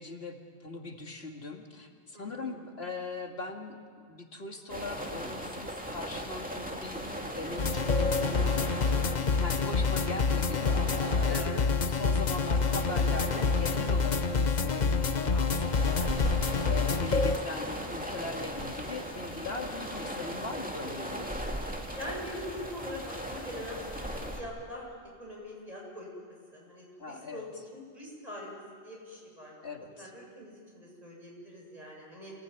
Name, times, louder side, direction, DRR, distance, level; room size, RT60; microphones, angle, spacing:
voice 1, 0.0-3.8 4.1-9.1 9.4-16.4 16.6-21.5 27.0-27.4 29.6-30.1, left 3 dB, 80° left, 3 dB, 2.6 m, -40 dB
voice 2, 2.1-2.6 11.3-11.5 22.0-24.9 25.2-26.1 26.5-28.5 28.8-29.5 30.0-32.3, left 1 dB, 40° right, -3 dB, 8.1 m, -43 dB
sound 1, 4.7-24.4, equal, 10° right, 2.5 m, -38 dB
sound 2, 7.6-17.4, left 4 dB, 45° left, 1.0 m, -27 dB
28.5 x 19.5 x 9.5 m, 2.1 s
omnidirectional pair, 1.0 m